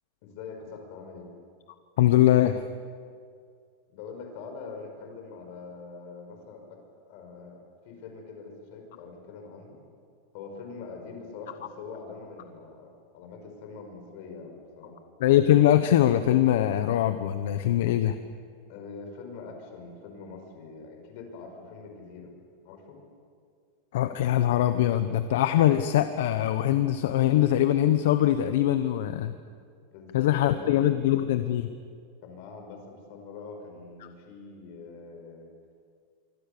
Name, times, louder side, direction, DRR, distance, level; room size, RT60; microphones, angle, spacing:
voice 1, 0.2-1.3 3.9-6.8 7.1-9.8 10.3-15.0 18.7-22.3 22.6-23.0 29.9-30.7 32.2-35.5, left 4 dB, 45° left, 3 dB, 5.4 m, -43 dB
voice 2, 2.0-2.6 15.2-18.2 23.9-29.3 30.1-31.7, left 12 dB, 65° left, 10 dB, 1.0 m, -22 dB
26.0 x 24.5 x 6.9 m, 2.1 s
supercardioid pair, 175°, 0 cm